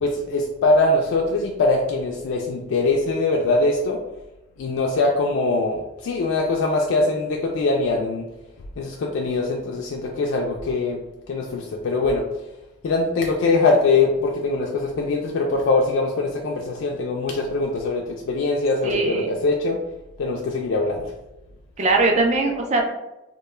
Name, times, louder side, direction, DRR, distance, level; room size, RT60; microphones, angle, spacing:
voice 1, 0.0-4.0 4.6-8.3 8.8-11.0 11.3-12.2 12.8-19.8 20.2-21.0, left 3 dB, 85° left, 0 dB, 0.3 m, -22 dB
voice 2, 18.8-19.3 21.8-22.8, right 3 dB, 35° right, 2 dB, 0.4 m, -20 dB
2.2 x 2.1 x 3.1 m, 0.95 s
head